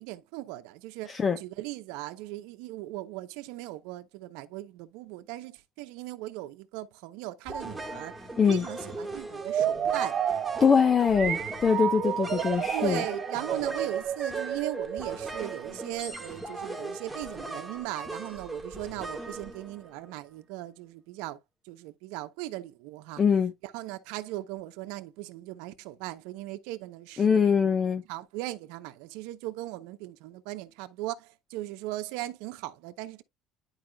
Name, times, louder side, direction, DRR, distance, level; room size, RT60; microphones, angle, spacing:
voice 1, 0.0-1.1 1.4-8.1 8.5-10.2 12.4-12.5 12.7-21.4 21.6-23.2 23.6-27.6 28.1-33.2, right 16 dB, 90° right, 0.7 m, -38 dB
sound 1, 7.5-20.2, right 2 dB, 5° right, 1.5 m, -39 dB
sound 2, 9.4-16.1, right 9 dB, 40° right, 0.5 m, -31 dB
voice 2, 10.6-13.0 23.2-23.5 27.2-28.0, left 6 dB, 30° left, 0.9 m, -23 dB
10.5 x 4.8 x 2.2 m
cardioid pair, 135°, 0 cm